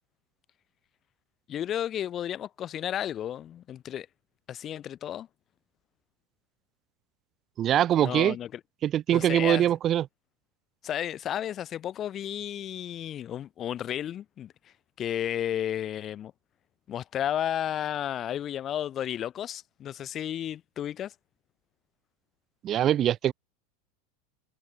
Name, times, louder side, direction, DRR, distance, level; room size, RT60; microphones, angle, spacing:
voice 1, 1.5-4.1 4.5-5.3 8.0-8.6 9.1-9.7 10.8-14.5 15.0-16.3 16.9-21.1, left 10 dB, 30° left, 0.5 m, -33 dB
voice 2, 7.6-8.3 8.8-10.0 22.6-23.3, right 11 dB, 35° right, 0.6 m, -23 dB
supercardioid pair, 130°, 0 cm